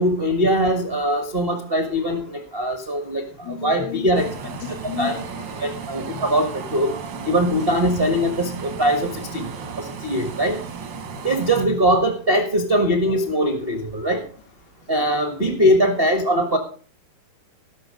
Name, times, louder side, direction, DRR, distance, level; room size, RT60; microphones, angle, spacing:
voice 1, 0.0-4.3 5.0-5.2 5.6-6.9 7.2-9.5 9.8-10.6 11.2-14.2 14.9-16.6, equal, 80° right, 5 dB, 0.5 m, -21 dB
voice 2, 3.4-4.3 4.6-5.8 6.1-6.2 11.2-11.3 15.4-15.5, left 9 dB, 80° left, 2 dB, 3.1 m, -33 dB
sound 1, 4.1-11.6, right 5 dB, 65° right, 1.1 m, -34 dB
16.5 x 6.8 x 5.1 m, 0.42 s
omnidirectional pair, 3.9 m